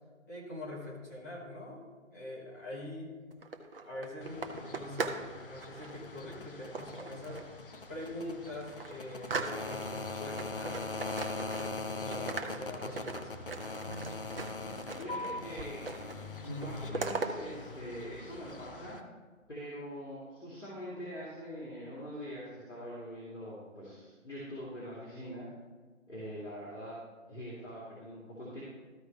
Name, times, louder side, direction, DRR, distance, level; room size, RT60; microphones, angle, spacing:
voice 1, 0.3-1.8 2.1-3.1 3.8-5.2 5.4-7.4 7.9-10.8 11.3-13.4, left 1 dB, 15° left, -6 dB, 1.2 m, -44 dB
sound 1, 3.3-5.3 5.6-5.9 6.7-7.6 8.0-8.1 8.4-10.0 10.4-11.9 12.1-15.3 15.6-16.2 16.4-17.3, right 4 dB, 45° right, 0.9 m, -39 dB
sound 2, 4.2-19.0, left 3 dB, 40° left, 0.7 m, -42 dB
voice 2, 15.0-19.0 19.5-25.5 26.1-27.0 27.3-28.6, equal, 60° left, -8 dB, 2.9 m, -43 dB
14.0 x 4.9 x 3.4 m, 1.4 s
figure-of-eight pair, 150°, 40 cm